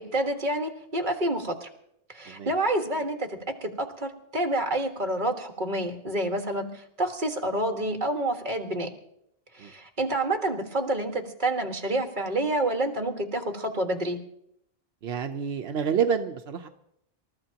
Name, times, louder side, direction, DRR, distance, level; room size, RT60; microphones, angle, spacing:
voice 1, 0.0-1.7 2.1-8.9 9.5-14.2, right 1 dB, 50° right, 4 dB, 1.8 m, -28 dB
voice 2, 15.0-16.7, right 7 dB, 90° right, 6 dB, 1.1 m, -28 dB
27.5 x 14.0 x 2.9 m, 0.75 s
omnidirectional pair, 1.0 m